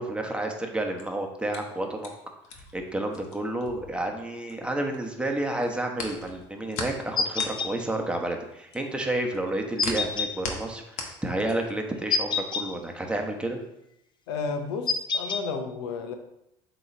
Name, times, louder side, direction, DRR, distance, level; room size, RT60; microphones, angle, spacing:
voice 1, 0.0-2.1 2.7-13.6, right 1 dB, 10° right, 2 dB, 1.1 m, -30 dB
sound 1, 0.8-5.0 5.3-11.8, left 4 dB, 70° left, 1.1 m, -39 dB
sound 2, 7.2-7.7 9.8-10.3 12.1-12.7 14.9-15.4, left 4 dB, 35° left, 0.6 m, -26 dB
voice 2, 14.3-16.1, left 4 dB, 85° left, 6 dB, 0.7 m, -32 dB
7.7 x 3.1 x 4.4 m, 0.83 s
supercardioid pair, 85°, 13 cm